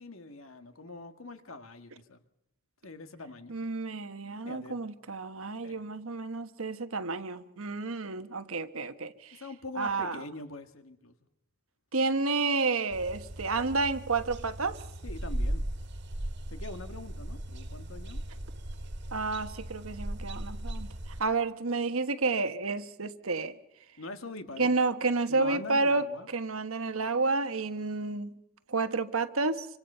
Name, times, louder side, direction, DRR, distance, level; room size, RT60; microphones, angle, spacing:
voice 1, 0.0-2.2 2.8-3.6 4.4-4.8 5.6-5.9 9.3-11.1 15.0-15.7 16.5-18.2 24.0-24.7 25.3-26.3, left 2 dB, 80° left, 1.9 m, -43 dB
voice 2, 3.5-9.4 9.8-10.2 11.9-14.8 19.1-20.9 21.2-23.5 24.6-26.0 26.3-28.3 28.7-29.7, right 3 dB, 85° right, 1.3 m, -30 dB
sound 1, 12.9-21.2, right 1 dB, 55° right, 1.8 m, -37 dB
27.0 x 25.5 x 5.7 m
head